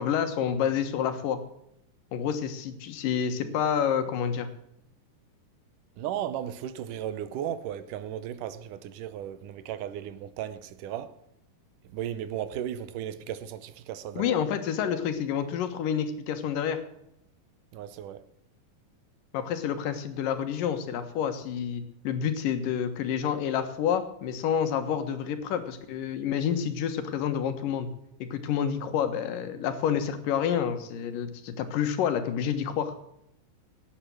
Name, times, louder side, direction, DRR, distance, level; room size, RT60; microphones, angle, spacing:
voice 1, 0.0-1.4 2.1-4.5 14.2-16.8 19.3-27.9 28.2-32.9, left 8 dB, 85° left, 3.0 m, -28 dB
voice 2, 6.0-11.2 11.9-14.3 17.7-18.2, right 10 dB, 80° right, 2.4 m, -35 dB
17.5 x 8.6 x 6.2 m
omnidirectional pair, 3.8 m